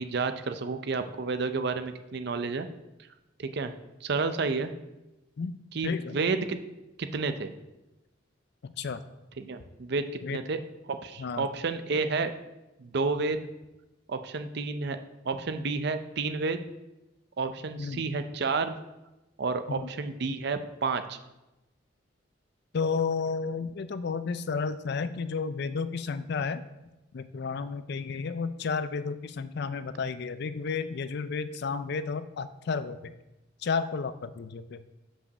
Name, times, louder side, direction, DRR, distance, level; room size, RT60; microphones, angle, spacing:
voice 1, 0.0-2.7 3.4-3.7 4.0-4.7 5.7-6.6 7.0-7.5 9.4-10.0 10.3-10.6 10.9-12.3 12.8-13.4 14.1-15.0 15.2-16.6 17.4-18.7 19.4-21.2, right 4 dB, 60° right, 9 dB, 0.6 m, -30 dB
voice 2, 5.8-6.2 8.6-9.0 10.2-10.4 11.2-11.5 17.8-18.1 19.7-19.9 22.7-26.6 27.1-33.1 33.6-34.8, left 5 dB, 60° left, 13 dB, 0.4 m, -32 dB
5.6 x 5.1 x 6.6 m, 0.97 s
head